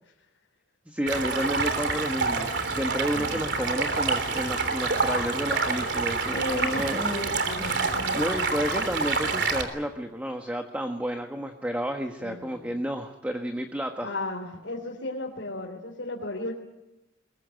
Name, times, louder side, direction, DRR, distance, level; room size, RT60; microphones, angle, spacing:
voice 1, 0.9-14.1, equal, 10° right, 4 dB, 1.4 m, -31 dB
Stream, 1.1-9.6, right 4 dB, 65° right, 3.4 m, -27 dB
voice 2, 6.3-8.2 8.8-9.1 12.2-12.7 14.0-16.5, left 2 dB, 80° left, -1 dB, 3.5 m, -35 dB
22.5 x 21.5 x 9.4 m, 0.98 s
head